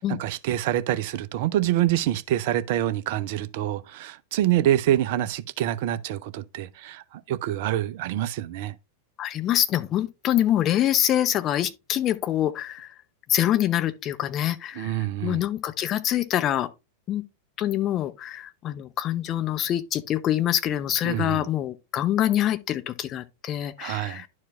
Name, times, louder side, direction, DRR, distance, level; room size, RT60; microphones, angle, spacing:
voice 1, 0.0-8.7 14.8-15.4 21.0-21.4 23.8-24.2, right 12 dB, 50° right, 0.6 m, -26 dB
voice 2, 9.2-12.9 13.3-16.7 17.1-17.2 17.6-24.3, left 12 dB, 30° left, 0.7 m, -25 dB
11.5 x 4.7 x 2.4 m
figure-of-eight pair, 90°, 0 cm